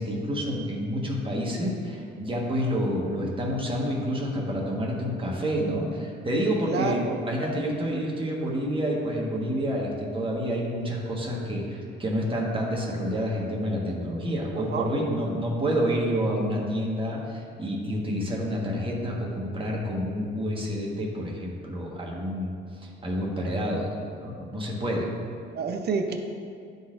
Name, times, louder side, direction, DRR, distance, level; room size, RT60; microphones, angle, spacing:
voice 1, 0.0-22.5 22.8-23.9 24.2-25.1, equal, 25° right, -3 dB, 1.4 m, -28 dB
voice 2, 6.7-7.2 14.6-14.9 25.5-26.2, right 5 dB, 55° right, 5 dB, 0.5 m, -29 dB
11.0 x 4.0 x 2.6 m, 2.4 s
cardioid pair, 90°, 20 cm